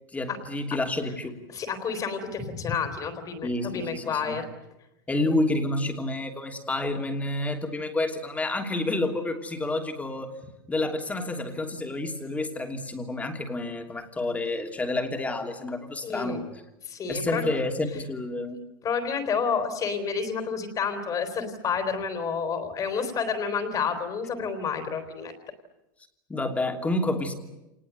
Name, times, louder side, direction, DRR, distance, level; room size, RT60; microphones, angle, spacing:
voice 1, 0.1-1.4 3.4-4.4 5.1-10.3 10.7-16.4 17.1-18.6 26.3-27.3, left 2 dB, 15° left, 5 dB, 3.0 m, -29 dB
voice 2, 1.5-4.5 16.0-16.4 16.8-17.5 18.8-25.4, left 6 dB, 30° left, 8 dB, 3.8 m, -29 dB
26.5 x 20.0 x 9.3 m, 0.94 s
supercardioid pair, 130°, 11 cm